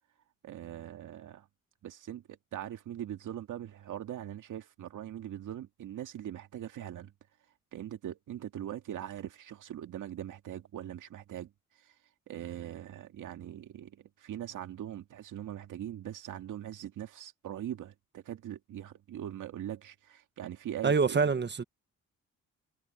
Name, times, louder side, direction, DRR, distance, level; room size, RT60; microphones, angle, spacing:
voice 1, 0.4-1.5 1.8-7.1 7.7-12.0 12.3-21.3, right 11 dB, 75° right, 2.2 m, -41 dB
voice 2, 20.8-21.6, right 5 dB, 35° right, 1.6 m, -26 dB
supercardioid pair, 65°, 31 cm